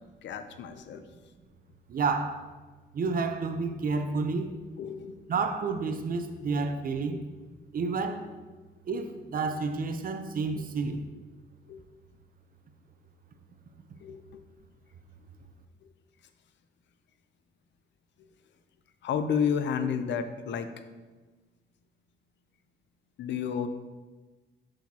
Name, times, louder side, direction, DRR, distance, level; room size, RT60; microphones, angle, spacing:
voice 1, 0.2-1.0 4.8-5.2 7.1-7.2 11.7-11.8 14.0-14.4 19.0-20.7 23.2-23.7, left 7 dB, 65° left, 0.6 m, -31 dB
voice 2, 1.9-2.4 2.9-4.5 5.3-7.2 7.7-8.3 8.9-11.0, right 4 dB, 45° right, 0.6 m, -30 dB
6.3 x 6.2 x 2.8 m
cardioid pair, 90°, 20 cm